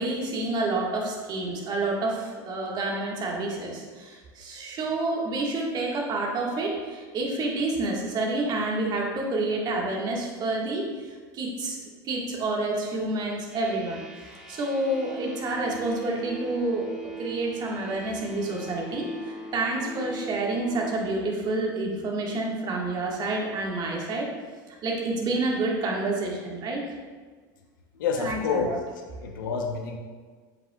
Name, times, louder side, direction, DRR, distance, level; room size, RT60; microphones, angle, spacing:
voice 1, 0.0-14.0 14.5-16.9 17.2-24.3 24.7-26.8 28.2-28.7, right 2 dB, 40° right, -2 dB, 1.6 m, -29 dB
sound 1, 13.5-20.9, right 2 dB, 5° right, 1.3 m, -41 dB
voice 2, 27.9-28.7 29.2-30.0, left 5 dB, 90° left, 3 dB, 0.8 m, -28 dB
7.7 x 5.4 x 2.3 m, 1.5 s
supercardioid pair, 110°, 10 cm